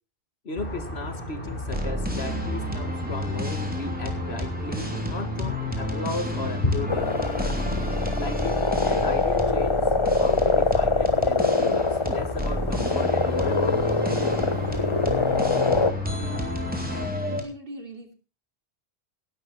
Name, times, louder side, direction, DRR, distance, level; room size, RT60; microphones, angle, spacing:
voice 1, 0.4-7.1 8.2-9.9 10.2-14.6, left 3 dB, 75° left, 9 dB, 2.1 m, -36 dB
sound 1, 0.6-17.1, left 2 dB, 55° left, 4.1 m, -35 dB
sound 2, 1.4-17.4, left 1 dB, 10° right, 3.1 m, -30 dB
sound 3, 6.9-15.9, left 3 dB, 30° left, 0.9 m, -24 dB
voice 2, 16.1-16.7 17.3-18.1, right 1 dB, 55° right, 5 dB, 3.0 m, -41 dB
16.5 x 12.0 x 4.1 m, 0.33 s
omnidirectional pair, 1.1 m